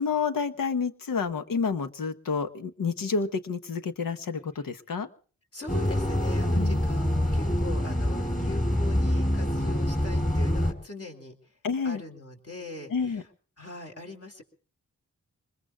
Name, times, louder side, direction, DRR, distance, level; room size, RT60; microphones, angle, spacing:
voice 1, 0.0-5.1 6.5-6.8 11.6-12.0 12.9-13.2, left 5 dB, 85° left, 9 dB, 1.2 m, -29 dB
voice 2, 5.5-11.3 11.8-13.2 13.6-14.4, left 2 dB, 45° left, 2 dB, 3.9 m, -41 dB
sound 1, 5.7-10.7, left 1 dB, 25° left, 4.8 m, -25 dB
25.0 x 21.0 x 2.4 m, 0.41 s
cardioid pair, 45°, 33 cm